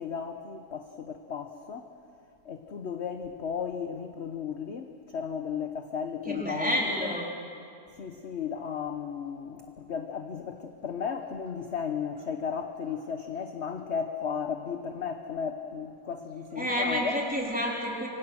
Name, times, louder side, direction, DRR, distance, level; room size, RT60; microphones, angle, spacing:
voice 1, 0.0-1.9 2.4-7.1 8.0-17.1, left 7 dB, 45° left, 6 dB, 1.1 m, -35 dB
voice 2, 6.3-7.3 16.6-18.1, equal, 5° right, -3 dB, 4.0 m, -29 dB
26.5 x 23.5 x 6.4 m, 2.4 s
omnidirectional pair, 1.8 m